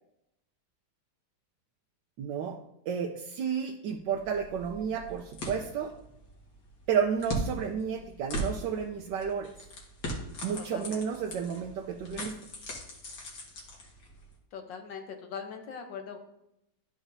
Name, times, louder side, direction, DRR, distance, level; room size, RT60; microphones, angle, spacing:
voice 1, 2.2-2.6 2.9-5.9 6.9-9.5 10.4-12.4, right 7 dB, 85° right, 2 dB, 1.3 m, -31 dB
sound 1, 4.1-14.4, right 1 dB, 70° left, 2.0 m, -40 dB
voice 2, 10.5-11.0 14.5-16.2, left 6 dB, 90° left, 4 dB, 1.7 m, -41 dB
12.0 x 5.0 x 2.7 m, 0.83 s
omnidirectional pair, 1.9 m